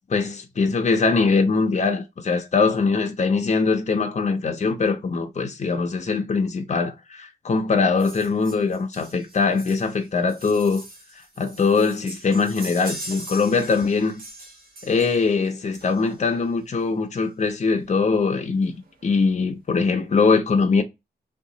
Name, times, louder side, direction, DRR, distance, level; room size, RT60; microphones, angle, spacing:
voice 1, 0.1-10.8 11.4-14.2 14.8-18.7 19.0-20.8, left 4 dB, 40° left, 0.6 m, -22 dB
sound 1, 8.0-16.3 17.4-17.5 17.8-17.9 18.2-18.3 18.7-19.3 19.7-19.8, right 1 dB, 55° right, 1.1 m, -41 dB
2.8 x 2.4 x 3.8 m
wide cardioid pair, 155°, 17 cm